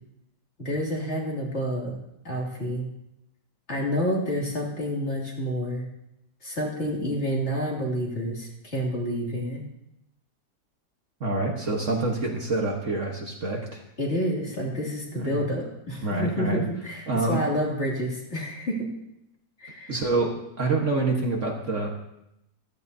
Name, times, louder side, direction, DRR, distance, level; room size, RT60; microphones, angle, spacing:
voice 1, 0.6-1.9 2.2-2.9 3.7-5.9 6.4-9.6 14.0-18.9 19.6-20.0, equal, 40° left, -3 dB, 2.7 m, -29 dB
voice 2, 11.2-13.8 15.1-15.4 16.0-16.6 17.1-17.4 19.9-21.9, right 3 dB, 45° right, 0 dB, 1.5 m, -26 dB
15.0 x 14.0 x 2.7 m, 0.85 s
omnidirectional pair, 1.8 m